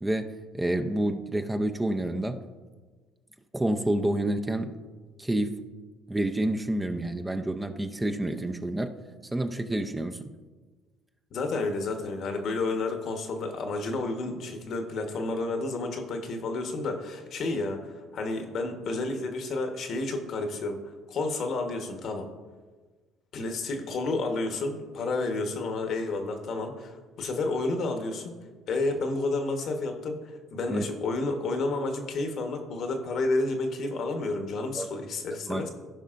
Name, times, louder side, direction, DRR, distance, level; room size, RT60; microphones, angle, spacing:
voice 1, 0.0-2.4 3.5-4.8 5.2-5.6 6.1-8.9 9.3-10.3 30.7-30.9 34.7-34.9 35.5-35.6, right 1 dB, 10° right, 6 dB, 0.6 m, -28 dB
voice 2, 11.3-20.8 21.1-22.3 23.3-26.9 27.2-28.4 28.7-35.7, left 3 dB, 55° left, 5 dB, 1.2 m, -30 dB
15.5 x 5.3 x 2.5 m, 1.4 s
supercardioid pair, 80°, 0 cm